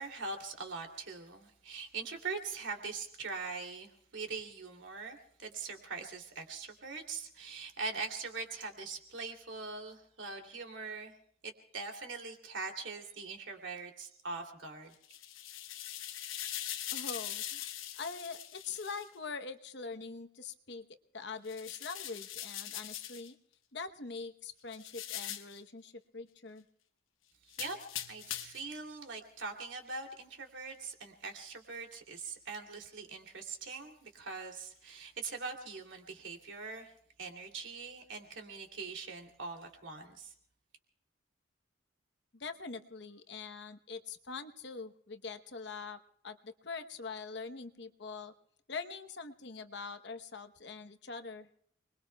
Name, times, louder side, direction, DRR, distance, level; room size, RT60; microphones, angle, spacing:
voice 1, 0.0-11.2 11.4-14.9 27.4-27.8 28.1-36.9 37.2-40.3, right 4 dB, 70° right, 4 dB, 2.8 m, -42 dB
sound 1, 14.9-19.1 21.4-23.3 24.7-25.6 27.5-28.7, left 12 dB, 85° left, 1.0 m, -42 dB
voice 2, 16.9-17.7 18.0-20.9 21.1-23.4 23.7-26.6 42.3-48.3 48.7-51.5, left 4 dB, 60° left, 8 dB, 0.9 m, -43 dB
29.5 x 21.5 x 2.3 m, 0.66 s
head